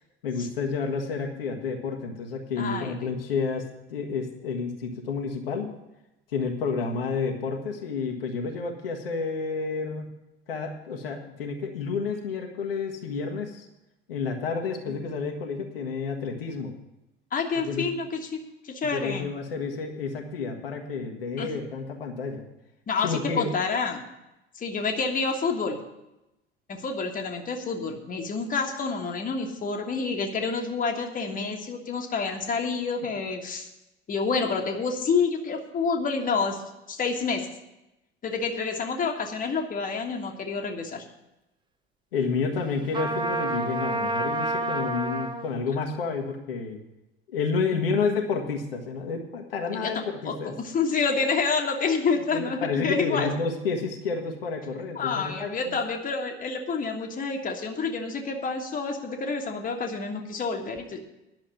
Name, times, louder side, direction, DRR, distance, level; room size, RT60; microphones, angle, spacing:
voice 1, 0.2-5.7 6.3-10.1 10.5-13.7 14.1-16.7 17.6-17.8 18.8-22.4 23.0-23.6 42.1-46.8 47.3-50.6 52.3-55.8, left 5 dB, 70° left, 2 dB, 1.4 m, -30 dB
voice 2, 2.6-3.1 6.8-7.0 14.8-15.1 17.3-19.3 21.4-21.5 22.9-24.0 24.6-25.8 26.7-33.7 34.1-36.6 36.9-37.5 38.2-41.0 47.7-47.9 49.7-49.9 50.2-53.3 54.9-61.0, left 4 dB, 30° left, 3 dB, 1.5 m, -28 dB
Trumpet, 42.9-45.4, right 2 dB, 15° right, 0.9 m, -28 dB
11.0 x 6.4 x 9.0 m, 0.93 s
figure-of-eight pair, 65°, 30 cm